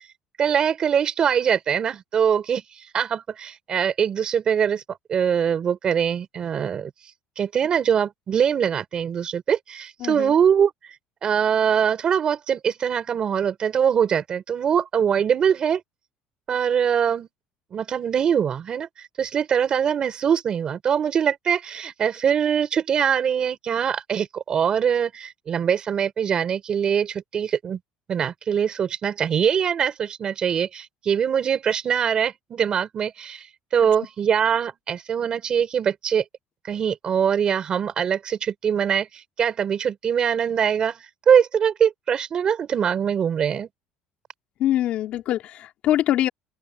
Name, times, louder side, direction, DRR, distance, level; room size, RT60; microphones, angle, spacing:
voice 1, 0.4-2.6 2.9-6.9 7.4-10.7 11.2-15.8 16.5-17.3 17.7-18.9 19.2-27.8 28.1-33.4 33.7-36.2 36.7-39.1 39.4-41.0 41.3-43.7, right 8 dB, 30° right, 4.0 m, -22 dB
voice 2, 10.0-10.3 44.6-46.3, left 12 dB, 50° left, 3.5 m, -23 dB
open air
cardioid pair, 160°, 3 cm